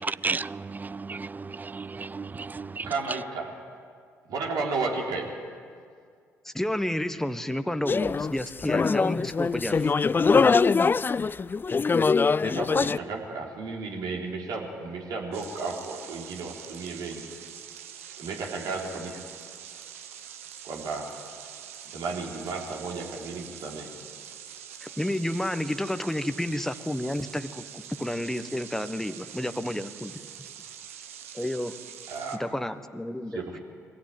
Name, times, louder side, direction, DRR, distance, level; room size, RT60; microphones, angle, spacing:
voice 1, 0.0-2.9, right 4 dB, 25° right, 0.5 m, -33 dB
voice 2, 2.8-3.5 4.3-5.3 12.4-17.2 18.2-19.3 20.6-21.1 21.9-23.9 32.1-32.5 33.3-33.6, right 4 dB, 65° right, 3.8 m, -33 dB
voice 3, 6.4-10.1 24.8-30.2 31.3-31.8 32.4-33.4, left 1 dB, 5° left, 1.3 m, -31 dB
sound 1, 7.9-13.0, left 5 dB, 30° left, 0.5 m, -23 dB
sound 2, 15.3-32.4, right 9 dB, 85° right, 0.8 m, -44 dB
23.0 x 16.0 x 9.2 m
hypercardioid pair, 45°, 7 cm